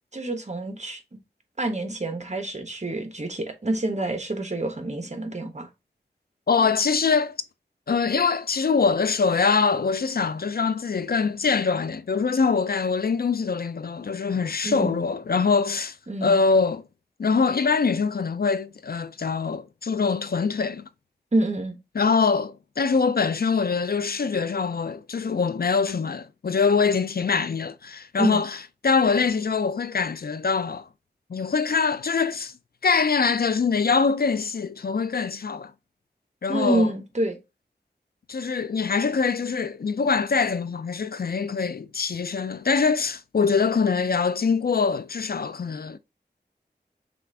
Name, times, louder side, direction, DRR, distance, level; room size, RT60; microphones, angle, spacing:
voice 1, 0.1-1.0 1.6-5.7 14.6-15.0 16.1-16.4 21.3-21.8 28.2-28.4 36.5-37.4, right 2 dB, 40° right, 1.1 m, -27 dB
voice 2, 6.5-7.4 7.9-16.0 16.2-16.8 17.2-20.9 22.0-28.6 28.8-30.9 31.3-32.5 32.8-35.7 36.4-36.9 38.3-46.0, left 5 dB, 60° left, 0.4 m, -23 dB
5.9 x 2.5 x 3.4 m
wide cardioid pair, 45°, 18 cm